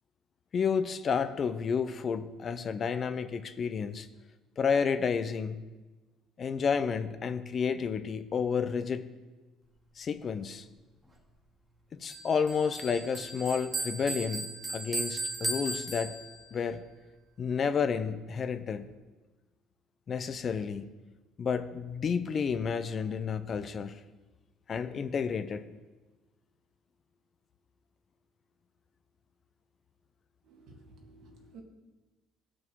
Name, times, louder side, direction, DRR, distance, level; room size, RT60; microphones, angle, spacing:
voice 1, 0.5-4.1 4.6-5.6 6.4-9.1 10.0-10.6 11.9-16.1 16.5-16.8 17.4-18.9 20.1-20.9 21.4-24.0 24.7-25.7, left 6 dB, 35° left, 11 dB, 0.5 m, -31 dB
Bell, 12.1-16.6, right 2 dB, 10° right, 1.7 m, -36 dB
voice 2, 30.5-31.6, right 3 dB, 65° right, 1 dB, 2.0 m, -53 dB
15.0 x 6.1 x 4.6 m, 1.2 s
cardioid pair, 125°, 0 cm